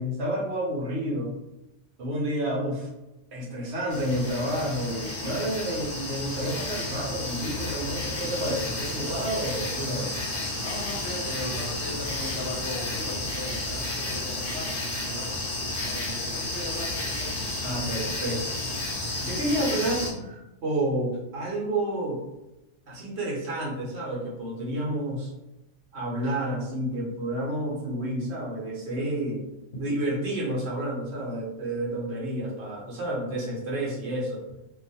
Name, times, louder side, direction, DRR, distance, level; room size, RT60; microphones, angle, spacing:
voice 1, 0.0-1.4 2.0-2.9 3.3-10.1 17.6-18.6 19.2-22.2 22.9-25.3 25.9-29.4 29.8-34.4, right 1 dB, 60° right, -4 dB, 0.9 m, -30 dB
sound 1, 3.9-20.1, left 2 dB, 40° left, 0.5 m, -32 dB
voice 2, 10.6-15.4 15.8-17.5, left 2 dB, 65° left, -2 dB, 0.9 m, -38 dB
2.4 x 2.3 x 2.6 m, 0.94 s
omnidirectional pair, 1.3 m